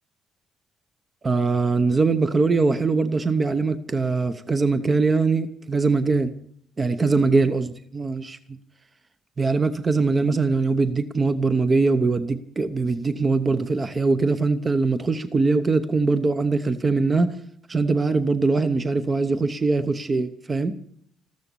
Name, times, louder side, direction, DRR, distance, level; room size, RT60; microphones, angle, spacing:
voice 1, 1.2-6.3 6.8-8.4 9.4-17.4 17.7-20.8, right 3 dB, 25° right, 10 dB, 0.8 m, -22 dB
14.5 x 13.0 x 6.9 m, 0.65 s
cardioid pair, 135°, 0 cm